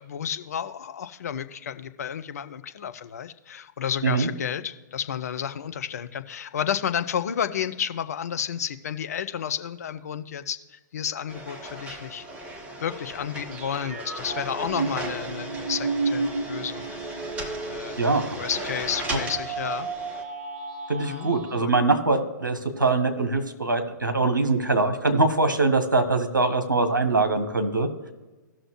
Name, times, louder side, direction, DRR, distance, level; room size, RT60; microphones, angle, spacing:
voice 1, 0.0-12.2 12.8-17.0 17.6-18.0 18.4-19.9 21.0-21.7, left 8 dB, 50° left, 10 dB, 0.6 m, -31 dB
sound 1, 11.3-20.2, right 2 dB, 10° right, 1.0 m, -36 dB
sound 2, 13.5-21.6, right 4 dB, 30° right, 1.1 m, -33 dB
voice 2, 20.9-27.9, right 3 dB, 75° right, 6 dB, 1.4 m, -23 dB
16.5 x 6.3 x 3.1 m, 1.2 s
figure-of-eight pair, 120°, 11 cm